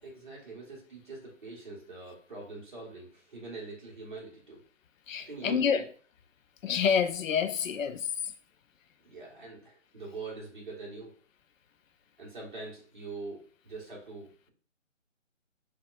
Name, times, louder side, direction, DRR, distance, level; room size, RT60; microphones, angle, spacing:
voice 1, 0.0-4.6 5.3-5.9 9.0-11.1 12.2-14.5, right 3 dB, 40° right, 1.0 m, -44 dB
voice 2, 5.1-5.8 6.6-8.1, left 7 dB, 80° left, 0.5 m, -27 dB
3.4 x 2.3 x 2.3 m
hypercardioid pair, 170°, 38 cm